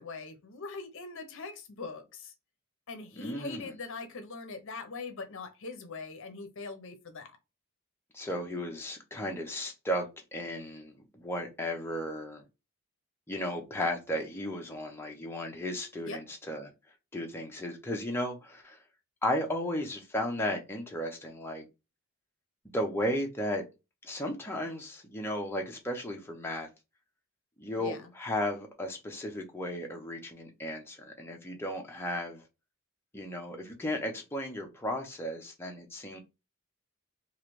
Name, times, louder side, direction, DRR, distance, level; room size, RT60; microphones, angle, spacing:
voice 1, 0.0-2.3 2.9-7.4 16.0-16.2 27.8-28.1, left 4 dB, 60° left, 0.6 m, -42 dB
voice 2, 3.2-3.7 8.1-10.1 10.3-12.4 13.3-16.7 17.1-18.8 19.2-21.7 22.7-23.6 24.0-26.7 27.6-32.4 33.1-36.2, left 1 dB, 10° left, 0.6 m, -35 dB
3.1 x 2.4 x 3.0 m
head